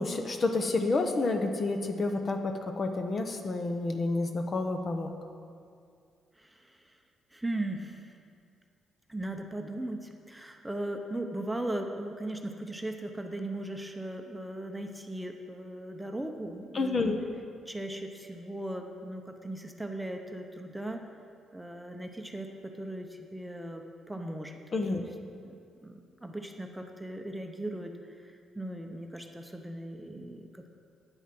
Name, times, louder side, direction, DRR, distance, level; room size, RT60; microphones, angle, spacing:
voice 1, 0.0-5.1 16.7-17.2 24.7-25.1, left 3 dB, 40° left, 5 dB, 0.9 m, -29 dB
voice 2, 6.3-7.0 7.3-8.1 9.1-17.1 17.7-21.0 21.5-24.6 24.9-25.0 25.4-25.6 25.8-30.7, right 1 dB, 5° right, 4 dB, 0.8 m, -38 dB
9.0 x 8.0 x 6.0 m, 2.3 s
cardioid pair, 90°, 0 cm